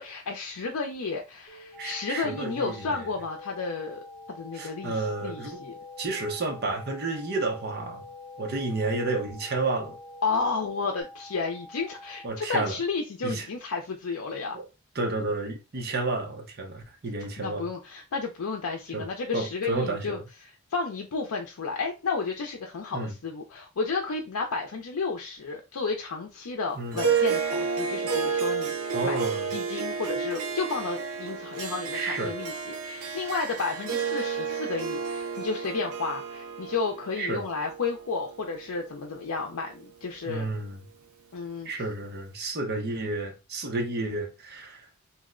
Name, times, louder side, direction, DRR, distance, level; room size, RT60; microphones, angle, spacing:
voice 1, 0.0-4.0 4.3-5.7 10.2-14.6 17.4-29.2 29.5-40.5 41.3-41.7, left 4 dB, 85° left, 0.5 m, -32 dB
sound 1, 1.5-11.0, left 2 dB, 50° left, 0.9 m, -49 dB
sound 2, 1.7-12.3, left 1 dB, 5° right, 0.4 m, -47 dB
voice 2, 1.8-3.1 4.5-5.6 6.0-8.0 8.4-10.0 12.2-12.8 13.2-13.5 14.5-14.6 14.9-17.7 18.9-19.1 19.3-20.2 22.9-23.1 26.8-27.0 28.9-29.5 31.9-32.3 37.2-37.4 40.3-40.8 41.6-44.9, right 2 dB, 45° right, 0.7 m, -31 dB
Harp, 26.9-39.5, right 6 dB, 90° right, 0.6 m, -31 dB
2.7 x 2.1 x 3.6 m
head